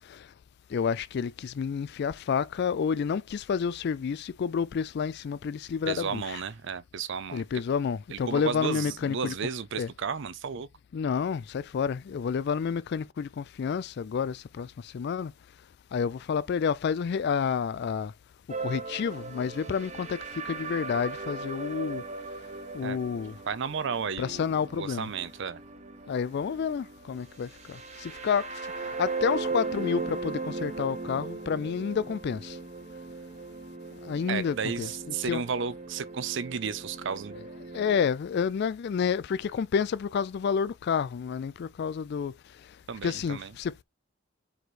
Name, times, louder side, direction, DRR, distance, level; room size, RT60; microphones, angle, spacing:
voice 1, 0.7-6.4 7.3-9.3 9.8-9.9 10.9-15.3 15.9-18.1 18.6-22.0 22.7-23.3 24.2-25.1 26.1-28.5 29.0-32.6 34.0-34.9 35.2-35.4 37.7-42.3 43.0-43.8, left 6 dB, 55° left, 0.3 m, -29 dB
voice 2, 5.9-7.4 8.1-10.7 22.8-23.0 23.5-25.6 34.3-37.5 42.9-43.5, right 6 dB, 60° right, 0.6 m, -33 dB
sound 1, 18.5-38.1, right 3 dB, 35° right, 0.9 m, -38 dB
4.9 x 4.6 x 4.2 m
head